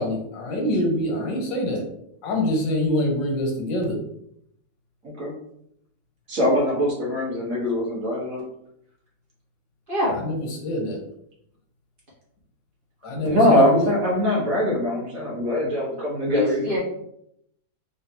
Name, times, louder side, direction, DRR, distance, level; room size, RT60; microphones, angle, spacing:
voice 1, 0.0-1.8 2.2-3.9 10.1-11.0 13.0-13.9, left 1 dB, 85° left, 1 dB, 1.7 m, -25 dB
voice 2, 6.3-8.4 13.2-16.8, left 1 dB, 50° right, -5 dB, 1.7 m, -22 dB
voice 3, 9.9-10.2 16.3-16.8, left 1 dB, 30° right, -6 dB, 1.8 m, -24 dB
4.0 x 3.6 x 2.9 m, 0.74 s
omnidirectional pair, 1.9 m